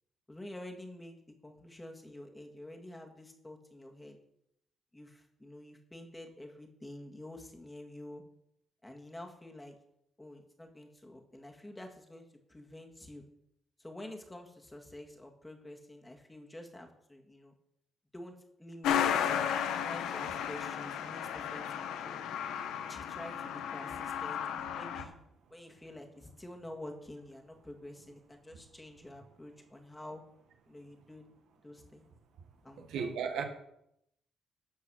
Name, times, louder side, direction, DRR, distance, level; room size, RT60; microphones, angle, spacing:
voice 1, 0.3-1.2 1.4-4.2 4.9-8.2 8.8-9.8 10.2-13.2 13.8-17.5 18.1-22.2 22.9-25.1 25.5-30.2 30.7-31.3 31.6-32.1 32.6-33.2, left 1 dB, 10° left, 2 dB, 1.8 m, -48 dB
Truck, 18.8-25.0, left 8 dB, 90° left, 0.9 m, -34 dB
voice 2, 32.8-33.4, right 6 dB, 80° right, 5 dB, 1.4 m, -35 dB
12.5 x 4.7 x 6.2 m, 0.77 s
cardioid pair, 90°, 0 cm